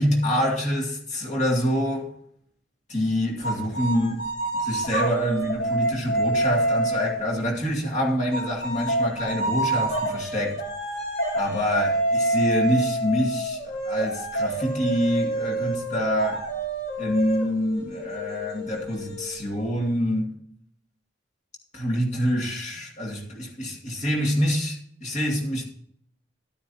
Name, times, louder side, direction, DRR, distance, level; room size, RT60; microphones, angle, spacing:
voice 1, 0.0-2.1 2.9-4.2 4.5-10.6 11.3-13.6 13.8-16.4 17.0-20.3 21.7-25.7, equal, 35° left, 2.3 m, -26 dB
sound 1, 3.4-7.3 8.3-19.6, right 1 dB, 65° left, 3.5 m, -27 dB
12.0 x 9.5 x 2.8 m
head